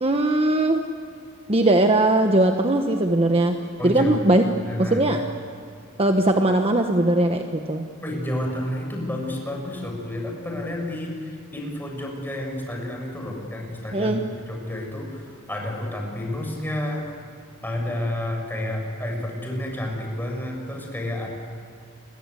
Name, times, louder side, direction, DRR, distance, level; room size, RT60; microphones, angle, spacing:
voice 1, 0.0-0.8 1.5-3.6 3.8-4.4 4.8-5.2 6.0-7.9 13.9-14.3, right 1 dB, 25° right, 4 dB, 1.3 m, -20 dB
voice 2, 3.8-4.2 4.7-5.0 8.0-11.1 11.5-17.1 17.6-21.3, left 1 dB, 10° left, 0 dB, 6.7 m, -30 dB
29.5 x 22.5 x 8.2 m, 2.5 s
head